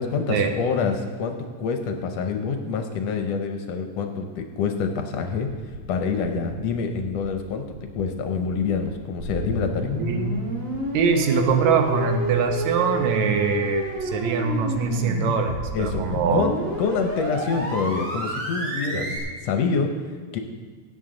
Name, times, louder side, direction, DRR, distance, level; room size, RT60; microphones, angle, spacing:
voice 1, 0.0-7.6 8.0-9.9 15.7-16.1 16.3-19.1 19.4-20.4, left 5 dB, 70° left, 5 dB, 1.7 m, -26 dB
sound 1, 5.7-5.8 6.2-6.6 7.0-7.3 7.7-8.1 8.5-8.8 9.2-9.6 10.0-10.3 10.7-11.1 11.5-11.8 12.2-12.6 13.0-13.3 13.7-14.1 14.5-14.8 15.2-15.6 16.0-16.3 16.7-17.1 17.5-17.6, right 4 dB, 55° right, 1.9 m, -42 dB
sound 2, 9.2-19.2, equal, 30° right, 2.3 m, -30 dB
voice 2, 10.0-10.3 10.9-16.5 18.9-19.1, right 5 dB, 80° right, 5 dB, 2.3 m, -23 dB
16.5 x 8.9 x 3.8 m, 1.5 s
omnidirectional pair, 3.3 m